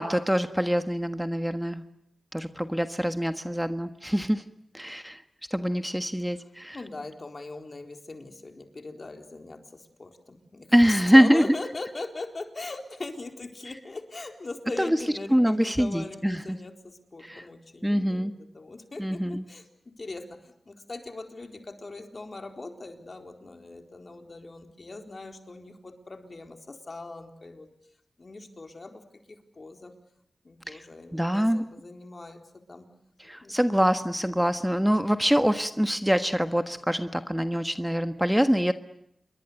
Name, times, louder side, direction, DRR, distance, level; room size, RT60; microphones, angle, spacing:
voice 1, 0.0-1.8 2.3-4.4 4.7-5.2 5.5-6.8 10.7-11.4 14.8-15.0 15.3-16.6 17.2-17.4 17.8-18.3 19.0-19.4 30.7-30.8 31.1-31.6 33.2-38.7, equal, 5° right, 8 dB, 1.4 m, -24 dB
voice 2, 6.7-27.7 28.2-29.9 30.4-32.4 32.7-32.9 33.4-33.6, left 2 dB, 50° left, 5 dB, 4.1 m, -40 dB
28.0 x 22.5 x 8.1 m, 0.75 s
cardioid pair, 55°, 0 cm